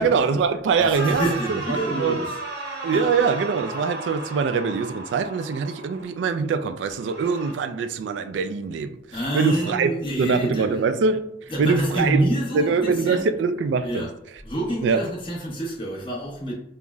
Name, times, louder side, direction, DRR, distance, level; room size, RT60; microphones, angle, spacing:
voice 1, 0.0-2.2 2.8-9.0 9.3-9.9 10.2-11.3 11.6-12.3 12.5-14.1 14.8-15.0, right 5 dB, 80° right, 0.3 m, -23 dB
voice 2, 0.8-2.4 2.9-3.1 9.1-10.7 11.5-13.2 13.8-14.1 14.4-16.5, right 1 dB, 30° left, 0.8 m, -27 dB
sound 1, 0.9-6.1 6.9-7.5, right 2 dB, 65° right, 0.8 m, -34 dB
5.2 x 2.0 x 2.3 m
head